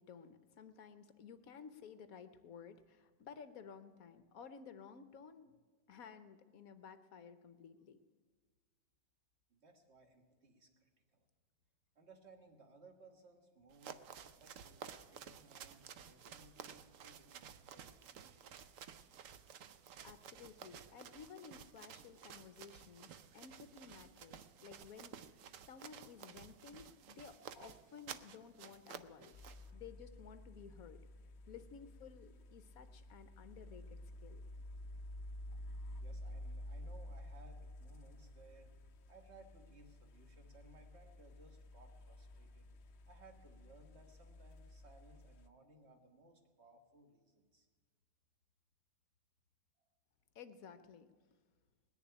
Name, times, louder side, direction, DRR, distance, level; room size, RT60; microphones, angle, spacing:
voice 1, 0.0-5.5 5.9-8.0 20.0-29.4 29.7-31.0 31.5-34.4 50.3-51.1, left 6 dB, 65° left, 11 dB, 0.9 m, -55 dB
voice 2, 9.5-11.3 12.0-19.0 29.5-29.8 31.5-31.6 36.0-42.7 43.1-47.7 49.8-49.9, right 2 dB, 35° right, 4 dB, 1.8 m, -63 dB
sound 1, 13.7-29.7, right 8 dB, 70° right, 0.7 m, -54 dB
sound 2, 29.3-45.5, left 1 dB, 90° left, 0.5 m, -51 dB
19.5 x 7.1 x 9.9 m, 1.5 s
omnidirectional pair, 2.0 m